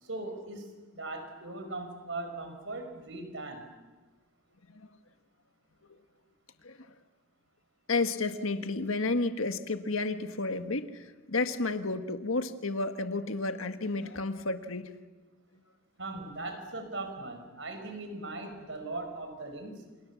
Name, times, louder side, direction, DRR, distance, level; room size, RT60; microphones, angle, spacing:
voice 1, 0.0-0.7 0.9-3.7 16.0-19.8, right 2 dB, 60° right, 6 dB, 5.4 m, -39 dB
voice 2, 6.6-6.9 7.9-14.9, left 3 dB, 80° left, 8 dB, 1.7 m, -31 dB
28.5 x 28.0 x 7.1 m, 1.3 s
head